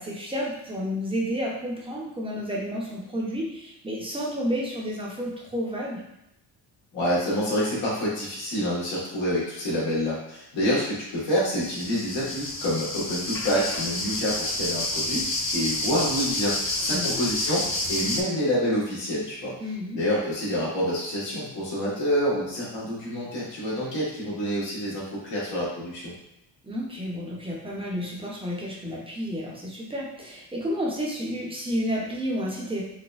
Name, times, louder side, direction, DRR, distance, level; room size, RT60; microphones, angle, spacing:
voice 1, 0.0-6.0 16.9-17.2 19.6-20.0 26.6-32.8, equal, 15° right, -4 dB, 0.5 m, -31 dB
voice 2, 6.9-15.3 15.5-17.6 17.9-19.5 19.9-26.1, equal, 90° left, -7 dB, 1.5 m, -27 dB
sound 1, 11.3-18.2, left 2 dB, 30° left, 0.5 m, -29 dB
4.0 x 2.1 x 2.3 m, 0.85 s
cardioid pair, 140°, 43 cm